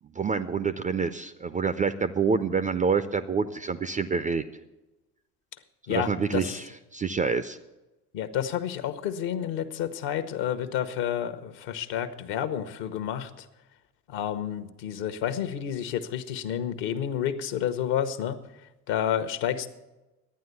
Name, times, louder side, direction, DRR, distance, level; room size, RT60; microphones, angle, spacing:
voice 1, 0.1-4.4 5.9-6.6 6.9-7.6, right 5 dB, 20° right, 13 dB, 0.4 m, -27 dB
voice 2, 5.9-6.6 8.1-13.5 14.1-18.4 18.9-19.7, left 9 dB, 65° left, 11 dB, 1.0 m, -30 dB
11.5 x 9.2 x 6.8 m, 1.1 s
hypercardioid pair, 65°, 47 cm